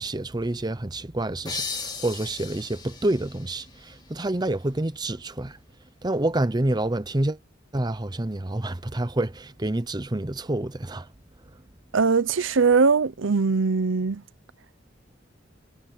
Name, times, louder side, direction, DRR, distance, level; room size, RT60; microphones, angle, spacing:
voice 1, 0.0-5.6 6.0-7.4 7.7-11.1, right 1 dB, 20° right, 0.8 m, -28 dB
sound 1, 1.5-4.9, left 4 dB, 20° left, 2.7 m, -37 dB
voice 2, 11.9-14.2, right 4 dB, 90° right, 0.8 m, -21 dB
head